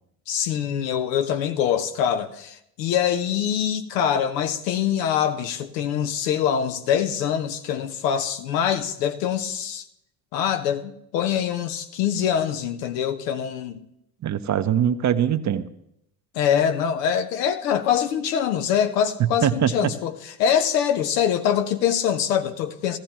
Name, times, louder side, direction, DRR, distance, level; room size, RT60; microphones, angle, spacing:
voice 1, 0.3-9.8 10.3-13.8 16.3-20.1 20.4-23.0, left 9 dB, 80° left, 1.0 m, -24 dB
voice 2, 14.2-15.6 19.2-19.9, right 9 dB, 35° right, 0.7 m, -22 dB
17.5 x 14.5 x 3.0 m
hypercardioid pair, 65°, 48 cm